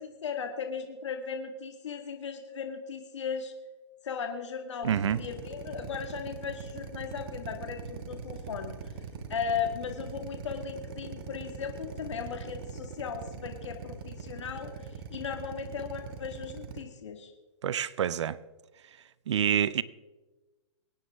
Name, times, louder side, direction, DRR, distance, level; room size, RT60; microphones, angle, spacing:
voice 1, 0.0-3.5 4.0-8.9 9.3-17.3, left 6 dB, 75° left, 1.8 m, -37 dB
Drill, 4.8-16.8, right 6 dB, 50° right, 1.5 m, -41 dB
voice 2, 4.8-5.2 17.6-18.4 19.3-19.8, right 9 dB, 70° right, 0.6 m, -27 dB
22.5 x 9.5 x 3.5 m
hypercardioid pair, 130°, 15 cm